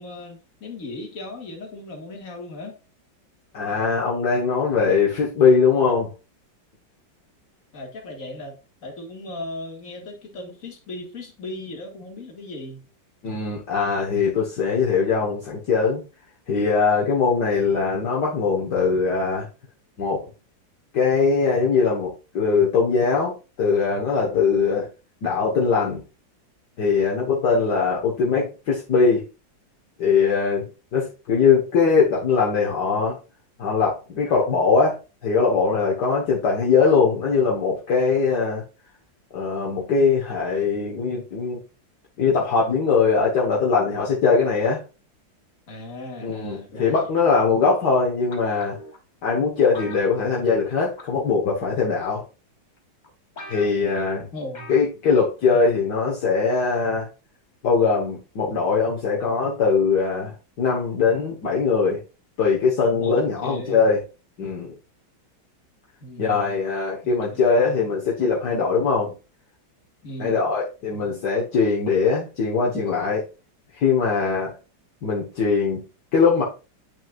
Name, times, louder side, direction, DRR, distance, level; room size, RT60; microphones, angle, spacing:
voice 1, 0.0-2.8 7.7-12.8 45.7-47.0 54.3-54.7 63.0-63.8 66.0-66.6 67.3-67.8 70.0-70.4, left 1 dB, 45° left, 1 dB, 2.4 m, -37 dB
voice 2, 3.5-6.1 13.2-16.0 16.5-19.5 20.0-20.2 20.9-24.9 25.2-26.0 26.8-29.2 30.0-30.7 30.9-33.2 33.6-38.6 39.3-41.6 42.2-44.8 46.2-48.8 49.2-52.2 53.5-54.3 54.7-57.1 57.6-62.0 62.4-64.0 64.4-64.7 66.2-69.1 70.2-73.3 73.7-74.5 75.0-75.8 76.1-76.4, left 5 dB, 65° left, -3 dB, 1.9 m, -21 dB
sound 1, 48.3-49.0 49.7-50.7 51.0-51.3 52.1-52.2 52.8-52.9 53.0-53.1 53.4-54.0 54.5-54.9 55.2-55.3, left 2 dB, 25° left, 1.2 m, -41 dB
8.9 x 6.3 x 2.5 m, 0.31 s
omnidirectional pair, 2.0 m